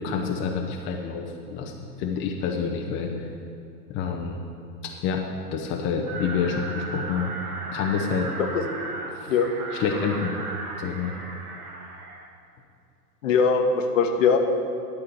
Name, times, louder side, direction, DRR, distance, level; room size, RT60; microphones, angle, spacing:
voice 1, 0.0-1.7 2.0-3.3 3.9-4.4 5.0-5.2 5.5-7.3 7.7-8.3 9.1-9.3 9.7-10.3 10.8-11.1, left 6 dB, 25° left, 1 dB, 0.9 m, -27 dB
sound 1, 6.1-12.3, right 3 dB, 65° right, 1.4 m, -36 dB
voice 2, 13.2-14.4, left 5 dB, 55° left, 4 dB, 1.3 m, -21 dB
11.5 x 5.0 x 7.6 m, 2.5 s
figure-of-eight pair, 95°, 47 cm